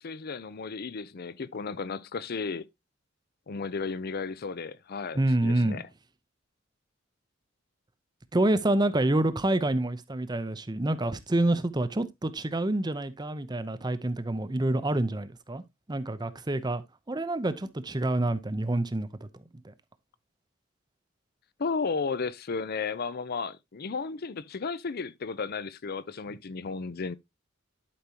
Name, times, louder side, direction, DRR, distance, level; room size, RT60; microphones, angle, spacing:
voice 1, 0.0-2.7 3.5-5.8 21.6-27.2, left 4 dB, 50° left, 0.5 m, -34 dB
voice 2, 5.1-5.8 8.3-15.6 15.9-19.3 19.6-19.7, right 1 dB, 20° right, 0.7 m, -27 dB
11.5 x 5.2 x 2.8 m
head